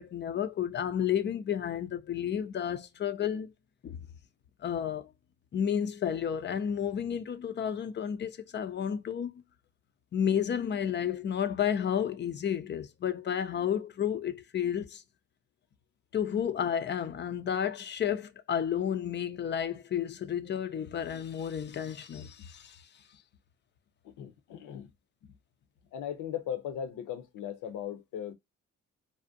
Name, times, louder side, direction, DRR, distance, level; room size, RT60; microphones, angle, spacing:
voice 1, 0.0-3.5 3.8-4.0 4.6-5.1 5.5-9.3 10.1-15.0 16.1-22.8, left 8 dB, 35° left, 0.4 m, -31 dB
voice 2, 24.0-24.9 25.2-25.3 25.9-28.3, left 9 dB, 80° left, 0.7 m, -38 dB
2.5 x 2.1 x 2.4 m
cardioid pair, 90°, 30 cm